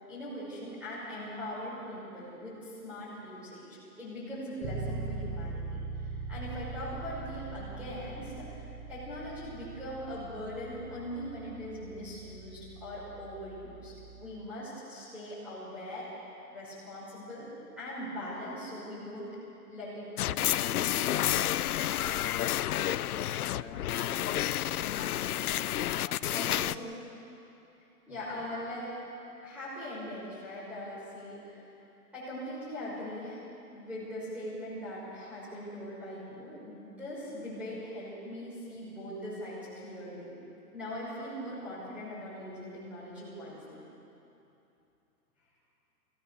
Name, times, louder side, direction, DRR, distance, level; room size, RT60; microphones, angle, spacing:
voice 1, 0.1-16.1 16.5-17.5 17.8-19.3 19.7-21.1 26.3-26.9 28.1-28.9 29.4-31.6 32.1-33.4 33.7-40.3 40.7-43.8, equal, 5° right, -11 dB, 5.8 m, -41 dB
Bass guitar, 4.6-14.4, right 4 dB, 35° right, 1.7 m, -41 dB
tb field tokyo, 20.2-26.8, left 12 dB, 65° left, 0.6 m, -30 dB
voice 2, 23.5-25.4 26.0-26.8 28.1-28.5, left 5 dB, 20° left, 0 dB, 1.8 m, -49 dB
24.5 x 16.5 x 6.9 m, 2.8 s
hypercardioid pair, 160°, 48 cm